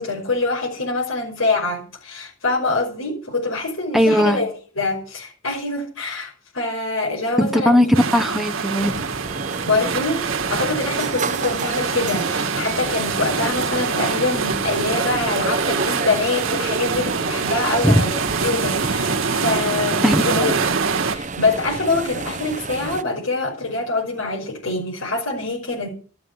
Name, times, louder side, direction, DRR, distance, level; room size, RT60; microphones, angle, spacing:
voice 1, 0.0-7.8 9.7-10.2 10.5-20.6 21.1-25.9, left 3 dB, 85° left, 5.8 m, -24 dB
voice 2, 3.9-4.4 7.4-8.9 17.8-17.9 20.0-20.5, equal, ahead, 0.8 m, -18 dB
sound 1, 7.9-21.2, right 5 dB, 80° right, 1.4 m, -25 dB
sound 2, 8.8-23.0, right 3 dB, 35° right, 0.8 m, -30 dB
14.5 x 7.9 x 9.3 m
head